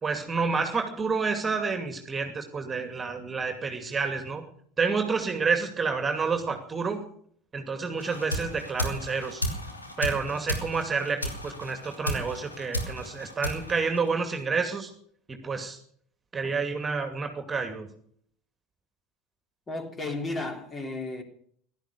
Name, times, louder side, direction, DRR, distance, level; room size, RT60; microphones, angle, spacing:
voice 1, 0.0-4.4 4.8-7.0 7.5-9.4 10.0-14.9 15.3-15.8 16.3-17.9, right 4 dB, 20° right, 2.6 m, -29 dB
sound 1, 8.0-14.5, equal, 85° left, 2.9 m, -34 dB
voice 2, 19.7-21.2, left 2 dB, 20° left, 3.7 m, -33 dB
17.0 x 12.5 x 6.8 m
figure-of-eight pair, 75°, 0 cm